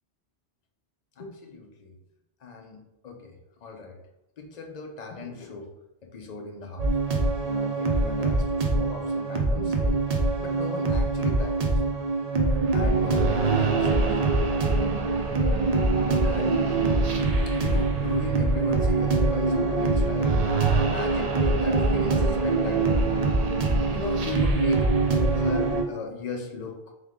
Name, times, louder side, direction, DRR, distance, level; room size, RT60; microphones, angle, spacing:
voice 1, 1.2-1.9 2.4-4.0 4.4-5.7 6.0-6.9 7.4-10.1 10.4-11.8 12.7-14.4 16.2-23.2 23.9-24.9 25.3-26.8, left 3 dB, 50° left, 3 dB, 0.5 m, -37 dB
sound 1, 6.8-25.8, right 3 dB, 50° right, 0.5 m, -23 dB
3.5 x 3.2 x 3.5 m, 0.89 s
omnidirectional pair, 1.2 m